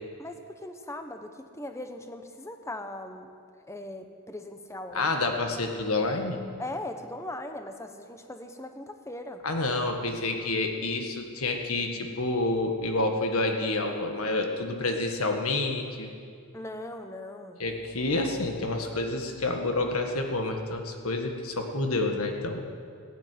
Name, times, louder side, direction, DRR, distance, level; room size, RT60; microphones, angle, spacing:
voice 1, 0.2-3.3 3.7-5.1 6.6-9.4 16.5-17.6, left 1 dB, 15° left, 6 dB, 1.0 m, -39 dB
voice 2, 4.9-6.4 9.4-16.1 17.6-22.6, left 2 dB, 70° left, 3 dB, 1.8 m, -28 dB
15.0 x 9.8 x 9.4 m, 2.2 s
head